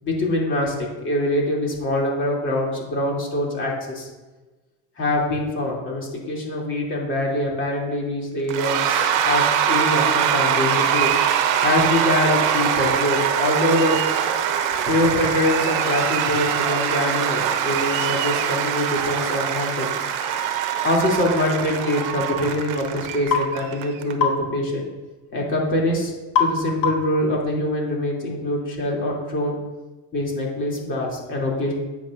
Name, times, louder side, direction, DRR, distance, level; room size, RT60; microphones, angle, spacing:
voice 1, 0.0-4.1 5.0-11.2 11.6-14.0 14.9-19.9 20.8-24.8 25.3-26.1 26.4-29.5 30.1-31.7, left 1 dB, 35° left, -3 dB, 2.9 m, -24 dB
Cheering / Applause / Crowd, 8.5-24.1, right 8 dB, 65° right, 1.0 m, -23 dB
sound 1, 23.3-23.5 24.2-24.4 26.3-26.6 26.8-27.2, left 6 dB, 75° left, 2.0 m, -21 dB
11.5 x 8.8 x 2.6 m, 1.2 s
cardioid pair, 135°, 34 cm